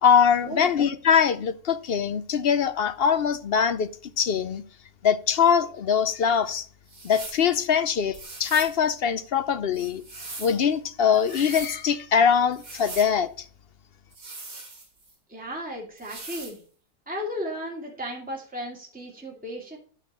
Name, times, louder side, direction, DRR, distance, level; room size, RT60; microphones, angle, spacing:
voice 1, 0.0-3.9 4.2-4.6 5.0-6.7 7.0-10.0 10.4-13.3, left 7 dB, 55° left, 0.8 m, -22 dB
sound 1, 6.9-7.4 8.1-8.8 9.7-10.6 11.1-11.7 12.5-13.1 14.1-15.1 16.0-16.6, right 3 dB, 80° right, 3.4 m, -40 dB
voice 2, 15.3-16.6 17.1-19.8, equal, 5° right, 2.4 m, -35 dB
11.5 x 4.4 x 6.7 m
omnidirectional pair, 1.5 m